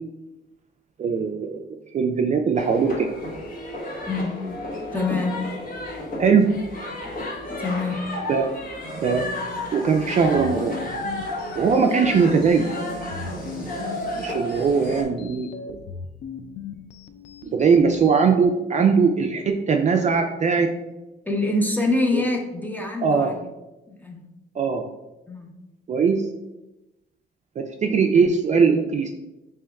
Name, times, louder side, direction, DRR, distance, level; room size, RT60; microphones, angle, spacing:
voice 1, 1.0-1.6 1.9-3.1 6.2-6.5 8.3-8.5 9.0-9.3 9.7-10.8 11.6-12.8 13.0-13.1 14.1-15.8 17.5-20.7 22.1-22.2 23.0-23.3 24.6-24.9 25.9-26.3 27.6-29.1, right 5 dB, 35° right, 4 dB, 0.3 m, -20 dB
sound 1, 2.5-15.0, left 1 dB, 45° left, 1.1 m, -32 dB
voice 2, 4.9-5.5 7.6-8.1 21.2-23.5 23.9-24.3 25.3-25.6, left 2 dB, 10° left, 2 dB, 0.7 m, -25 dB
sound 2, 10.2-18.5, left 5 dB, 60° left, 0.4 m, -39 dB
3.4 x 3.0 x 3.4 m, 1.0 s
cardioid pair, 90°, 20 cm